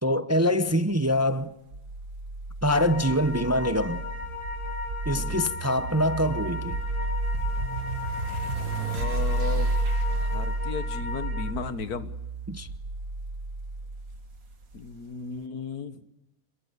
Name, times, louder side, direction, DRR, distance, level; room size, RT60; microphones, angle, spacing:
voice 1, 0.0-1.5 2.6-4.0 5.1-6.8 12.5-12.7, equal, 15° right, 0.6 m, -24 dB
sound 1, 1.7-14.9, right 2 dB, 65° right, 2.2 m, -31 dB
sound 2, 2.6-11.5, left 5 dB, 50° left, 2.8 m, -37 dB
voice 2, 8.8-9.7 10.2-12.2 14.7-16.0, left 5 dB, 85° left, 1.8 m, -35 dB
28.5 x 22.0 x 6.9 m
omnidirectional pair, 1.6 m